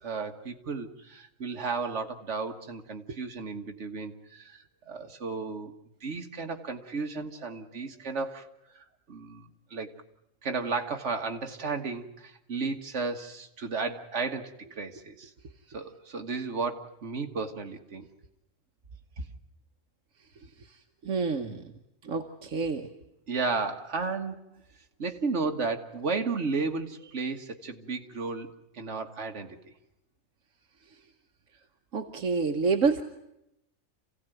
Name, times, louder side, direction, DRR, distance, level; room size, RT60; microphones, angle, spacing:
voice 1, 0.0-5.7 6.0-8.5 8.8-9.9 10.4-15.3 15.7-18.1 19.2-19.3 23.3-24.4 25.0-29.7, right 4 dB, 60° right, 4 dB, 1.8 m, -33 dB
voice 2, 21.0-21.6 22.0-22.9 31.9-33.0, right 4 dB, 75° right, 5 dB, 1.4 m, -27 dB
27.5 x 16.0 x 9.1 m, 0.85 s
omnidirectional pair, 1.4 m